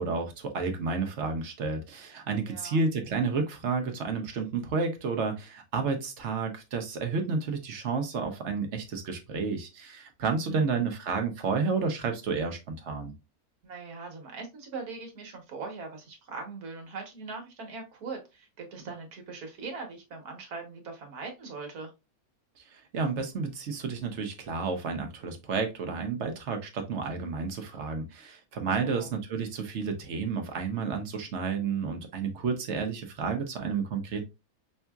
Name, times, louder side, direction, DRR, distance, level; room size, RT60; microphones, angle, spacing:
voice 1, 0.0-13.1 22.7-34.2, right 4 dB, 55° right, 5 dB, 1.1 m, -31 dB
voice 2, 2.5-2.8 10.5-10.7 13.6-21.9 28.8-29.1, right 4 dB, 75° right, 2 dB, 1.6 m, -41 dB
5.4 x 2.7 x 2.3 m, 0.25 s
omnidirectional pair, 1.6 m